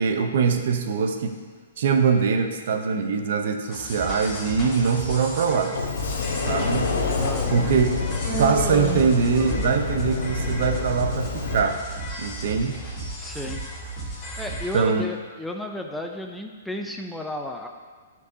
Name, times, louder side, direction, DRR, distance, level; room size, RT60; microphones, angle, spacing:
voice 1, 0.0-1.3 1.8-5.8 6.4-6.9 7.5-7.9 8.4-11.8 12.2-12.8 14.7-15.0, right 5 dB, 60° right, 6 dB, 0.6 m, -23 dB
sound 1, 3.7-14.8, right 1 dB, 25° left, 1.5 m, -35 dB
Sliding door, 5.7-11.6, left 5 dB, 85° left, 0.9 m, -27 dB
voice 2, 7.2-7.7 13.2-13.6 14.1-17.7, left 1 dB, 5° left, 2 dB, 0.4 m, -33 dB
Human voice, 8.2-9.9, right 5 dB, 15° right, 1.2 m, -30 dB
9.7 x 4.6 x 2.7 m, 1.5 s
hypercardioid pair, 150°, 0 cm